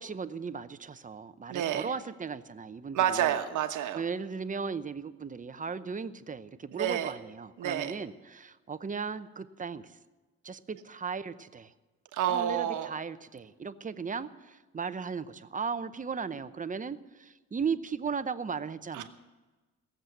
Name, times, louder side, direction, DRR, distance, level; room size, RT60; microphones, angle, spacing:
voice 1, 0.0-3.4 3.9-10.0 10.4-11.7 12.3-19.1, right 5 dB, 25° right, 13 dB, 0.7 m, -36 dB
voice 2, 1.5-1.9 2.9-4.0 6.7-7.1 7.6-8.0 12.1-12.9 18.9-19.1, right 10 dB, 80° right, 7 dB, 1.3 m, -29 dB
18.0 x 7.6 x 8.1 m, 1.2 s
cardioid pair, 90°, 30 cm